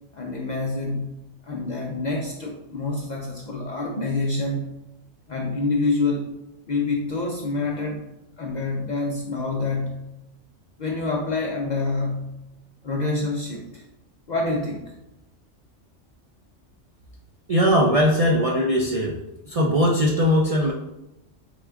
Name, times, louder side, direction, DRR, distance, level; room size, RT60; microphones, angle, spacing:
voice 1, 0.1-1.1 1.4-4.7 5.3-6.3 6.7-8.0 8.4-10.0 10.8-12.3 12.8-13.8 14.3-14.9, left 3 dB, 60° left, 0 dB, 0.5 m, -27 dB
voice 2, 17.5-19.2 19.5-20.7, equal, 55° right, -2 dB, 0.4 m, -20 dB
3.8 x 3.5 x 3.4 m, 0.91 s
omnidirectional pair, 1.2 m